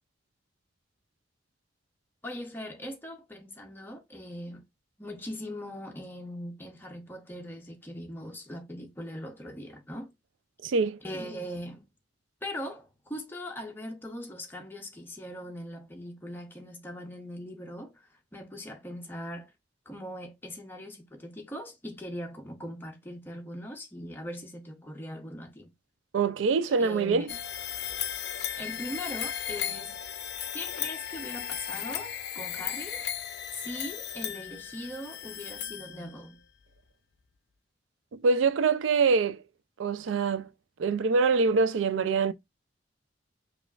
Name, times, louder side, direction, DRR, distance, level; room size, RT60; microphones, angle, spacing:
voice 1, 2.2-4.6 5.0-10.1 11.0-11.8 12.4-19.5 19.9-25.7 26.8-27.4 28.6-30.0 30.5-33.0 33.5-36.4, equal, 10° left, 0.6 m, -40 dB
voice 2, 10.6-11.0 26.1-27.3 38.1-39.4 39.8-40.5 40.8-42.3, right 4 dB, 90° right, 0.4 m, -24 dB
sound 1, 27.3-36.3, left 9 dB, 55° left, 0.5 m, -36 dB
4.9 x 2.4 x 2.4 m
head